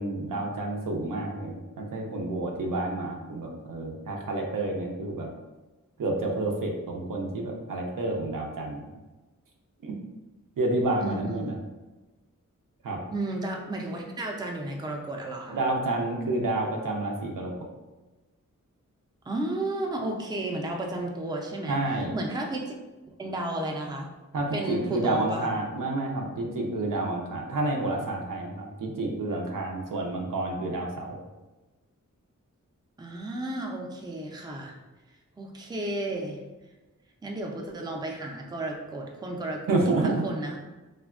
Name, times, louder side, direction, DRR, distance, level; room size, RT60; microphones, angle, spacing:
voice 1, 0.0-5.3 6.0-8.9 9.8-9.9 10.6-11.5 12.8-13.0 15.5-17.5 21.7-22.2 24.3-31.2 39.7-40.2, right 2 dB, 85° right, 0 dB, 0.6 m, -29 dB
voice 2, 11.0-11.6 13.1-15.6 19.3-22.7 23.2-24.1 24.5-25.5 33.0-34.8 35.4-36.4 37.2-40.6, right 1 dB, 15° right, 1 dB, 0.4 m, -33 dB
3.3 x 2.1 x 2.3 m, 1.1 s
wide cardioid pair, 90°, 32 cm